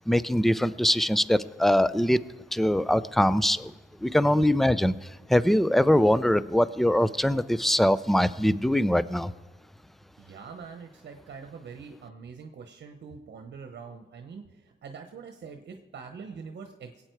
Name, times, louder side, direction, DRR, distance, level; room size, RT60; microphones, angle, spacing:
voice 1, 0.1-2.2 2.5-3.7 4.0-5.0 5.3-9.3, left 1 dB, ahead, 17 dB, 0.4 m, -22 dB
voice 2, 10.2-17.0, right 5 dB, 70° right, 6 dB, 1.0 m, -44 dB
21.5 x 8.6 x 4.6 m, 1.2 s
cardioid pair, 95°, 18 cm